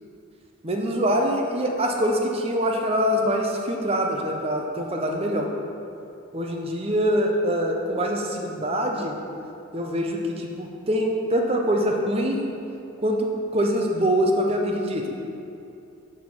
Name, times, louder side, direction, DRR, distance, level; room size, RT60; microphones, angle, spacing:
voice 1, 0.6-5.5 6.3-9.2 9.7-12.4 13.0-15.1, equal, 25° right, 1 dB, 0.6 m, -24 dB
6.1 x 4.9 x 5.5 m, 2.7 s
head